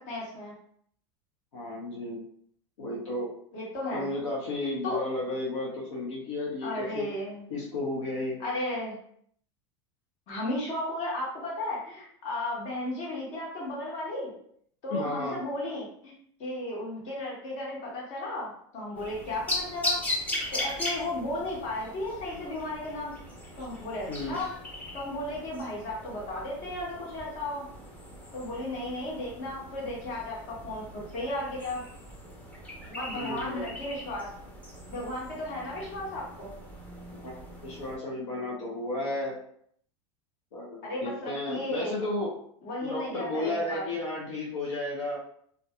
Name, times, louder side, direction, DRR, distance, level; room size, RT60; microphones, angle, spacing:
voice 1, 0.1-0.5 3.5-4.1 4.6-5.0 6.6-7.5 8.4-9.0 10.3-14.3 14.8-16.1 16.4-23.1 23.6-24.5 24.9-27.7 28.3-31.8 32.9-34.3 34.9-36.5 40.8-41.9 42.6-44.0, left 1 dB, 50° left, -4 dB, 1.3 m, -34 dB
voice 2, 1.5-2.2 2.8-3.3 3.9-7.1 7.5-8.4 14.9-15.4 24.1-24.4 33.1-33.7 37.2-37.3 37.6-39.4 40.5-42.3 42.8-45.2, left 2 dB, 85° left, -5 dB, 0.7 m, -33 dB
sound 1, 19.0-38.0, left 1 dB, 10° left, 0.7 m, -39 dB
2.6 x 2.4 x 2.3 m, 0.65 s
supercardioid pair, 110°, 15 cm